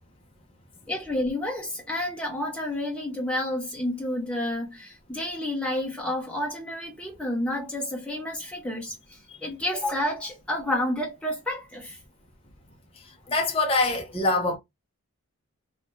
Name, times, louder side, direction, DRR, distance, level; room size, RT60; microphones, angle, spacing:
voice 1, 0.9-12.0, left 1 dB, 5° left, 1.1 m, -30 dB
voice 2, 13.3-14.6, left 2 dB, 25° left, 0.6 m, -24 dB
2.8 x 2.5 x 3.3 m
head